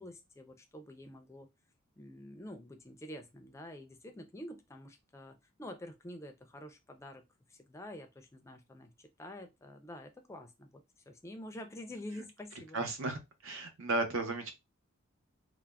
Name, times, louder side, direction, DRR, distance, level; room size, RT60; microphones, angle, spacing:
voice 1, 0.0-1.5 2.0-7.2 7.5-12.8, left 1 dB, 15° left, 0.3 m, -48 dB
voice 2, 12.7-14.5, right 2 dB, 70° right, 0.7 m, -34 dB
3.3 x 2.0 x 2.2 m
head